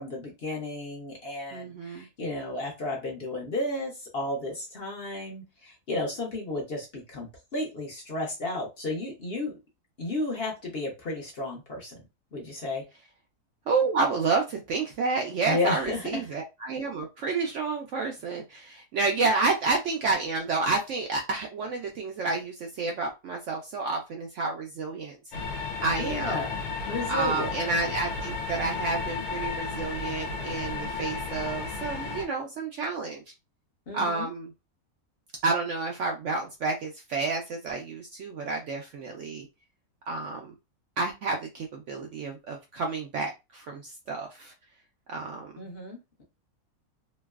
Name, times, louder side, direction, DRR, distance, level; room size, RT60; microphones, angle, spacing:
voice 1, 0.0-9.5 10.0-12.0 12.3-12.8 15.5-16.2 26.0-26.5 26.9-27.5 33.9-34.3 45.6-46.2, left 2 dB, 45° left, -1 dB, 0.9 m, -33 dB
voice 2, 1.5-2.1 13.7-25.2 25.8-26.5 27.1-33.2 33.9-34.5 35.4-39.5 40.1-40.5 41.0-44.5 45.1-45.5, right 3 dB, 65° right, 2 dB, 0.7 m, -30 dB
sound 1, 25.3-32.2, left 4 dB, 75° left, 1.2 m, -33 dB
3.0 x 2.6 x 2.3 m, 0.25 s
omnidirectional pair, 1.6 m